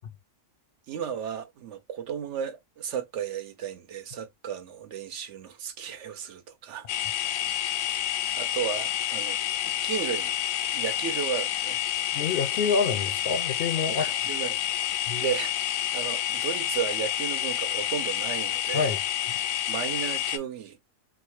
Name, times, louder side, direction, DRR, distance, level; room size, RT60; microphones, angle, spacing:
voice 1, 0.9-6.9 8.3-9.4 9.6-10.4 10.7-11.8 13.9-14.7 15.2-18.9 19.7-20.8, right 8 dB, 70° right, 0.9 m, -34 dB
sound 1, 6.9-20.4, left 11 dB, 85° left, 1.0 m, -29 dB
voice 2, 12.1-14.1 15.1-15.2 18.7-19.0, left 5 dB, 60° left, 0.6 m, -27 dB
4.2 x 2.1 x 3.0 m
omnidirectional pair, 1.4 m